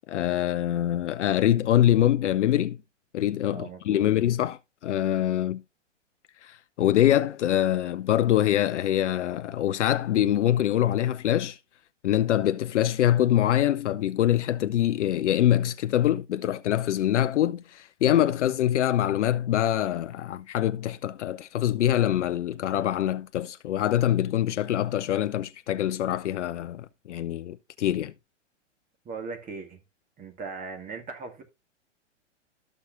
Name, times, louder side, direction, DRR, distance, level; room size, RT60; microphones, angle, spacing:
voice 1, 0.1-2.8 3.1-5.6 6.4-11.6 12.0-28.1, left 12 dB, 70° left, 0.6 m, -24 dB
voice 2, 3.5-4.1 29.0-29.8 30.2-31.4, right 4 dB, 20° right, 2.2 m, -38 dB
13.0 x 6.6 x 2.6 m
hypercardioid pair, 115°, 37 cm